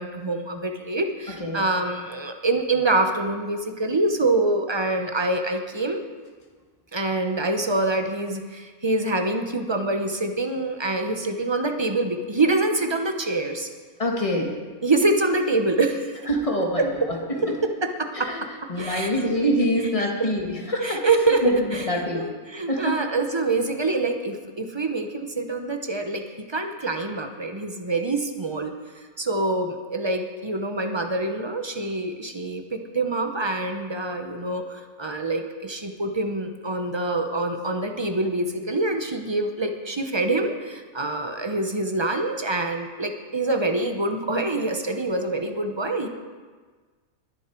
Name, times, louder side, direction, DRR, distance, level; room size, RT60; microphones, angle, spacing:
voice 1, 0.0-6.0 6.9-13.7 14.8-16.2 16.8-17.1 17.4-19.1 20.1-20.3 20.8-21.4 21.7-21.8 22.1-46.1, right 2 dB, 25° right, 5 dB, 0.8 m, -25 dB
voice 2, 14.0-14.5 16.3-17.6 18.1-18.4 18.7-21.0 21.4-22.2 22.7-22.9, equal, 25° left, 0 dB, 1.7 m, -25 dB
20.5 x 7.2 x 4.5 m, 1.4 s
omnidirectional pair, 1.5 m